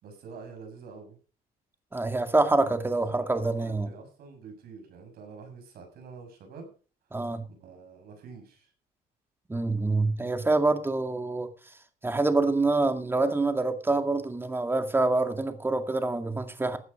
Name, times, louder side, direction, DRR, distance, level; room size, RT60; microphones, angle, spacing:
voice 1, 0.0-1.2 3.1-6.7 7.5-8.7, right 5 dB, 65° right, 4 dB, 6.8 m, -47 dB
voice 2, 1.9-3.9 7.1-7.4 9.5-11.5 12.0-16.8, right 2 dB, 15° right, 7 dB, 2.1 m, -26 dB
16.0 x 9.2 x 5.1 m, 0.38 s
cardioid pair, 110°, 17 cm